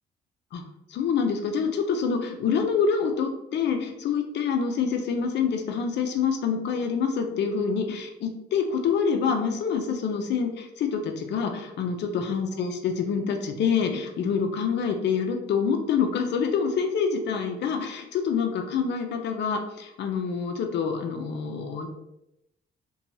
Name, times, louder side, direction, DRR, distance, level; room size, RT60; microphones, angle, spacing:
voice 1, 0.9-21.9, left 6 dB, 60° left, 4 dB, 0.5 m, -26 dB
2.8 x 2.2 x 2.6 m, 0.83 s
cardioid pair, 90°, 20 cm